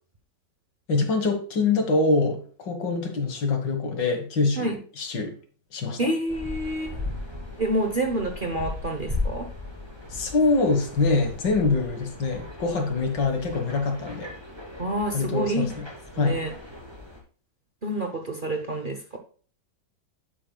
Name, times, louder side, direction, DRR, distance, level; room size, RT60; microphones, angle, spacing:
voice 1, 0.9-5.3 5.7-6.0 10.1-14.3 15.1-15.8 16.2-16.4, left 3 dB, 80° left, 5 dB, 2.3 m, -24 dB
voice 2, 6.0-7.0 7.6-9.5 14.8-15.7 16.1-16.5 17.8-19.2, right 1 dB, 35° right, 3 dB, 0.9 m, -28 dB
sound 1, 6.3-17.2, left 2 dB, 15° right, 2.7 m, -37 dB
11.0 x 8.0 x 2.3 m, 0.42 s
omnidirectional pair, 1.9 m